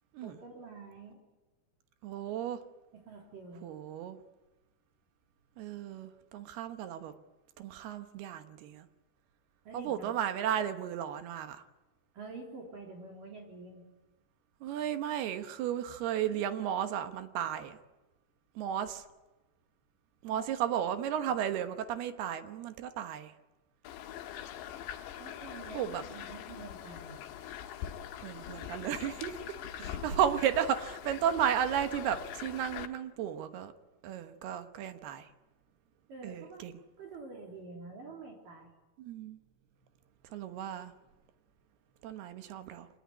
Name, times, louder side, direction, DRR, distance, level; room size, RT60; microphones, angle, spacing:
voice 1, 0.2-1.2 2.9-3.7 9.6-10.2 12.1-13.9 20.3-20.5 25.2-27.2 29.8-29.9 36.1-36.6 37.0-38.7, right 3 dB, 55° right, 0 dB, 4.9 m, -47 dB
voice 2, 2.0-2.6 3.6-4.2 5.6-7.1 7.6-8.9 9.7-11.6 14.6-17.8 18.6-19.1 20.2-23.3 25.7-26.0 28.2-29.4 30.0-33.7 34.0-35.3 36.2-36.7 39.0-39.4 40.2-40.9 42.0-42.9, right 9 dB, 70° right, 9 dB, 3.0 m, -34 dB
sound 1, 23.8-32.9, left 10 dB, 85° left, 3.5 m, -43 dB
25.0 x 19.0 x 9.6 m, 1.1 s
omnidirectional pair, 4.9 m